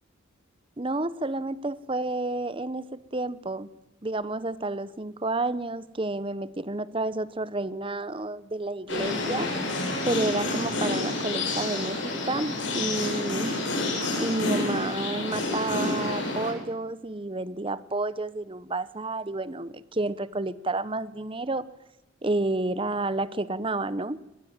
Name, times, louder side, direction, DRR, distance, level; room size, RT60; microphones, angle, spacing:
voice 1, 0.8-3.7 4.0-9.5 10.1-13.6 14.2-21.6 22.2-24.2, right 2 dB, 25° right, 17 dB, 0.8 m, -30 dB
sound 1, 8.9-16.5, left 2 dB, 65° left, 7.2 m, -29 dB
23.5 x 21.0 x 9.0 m, 0.93 s
head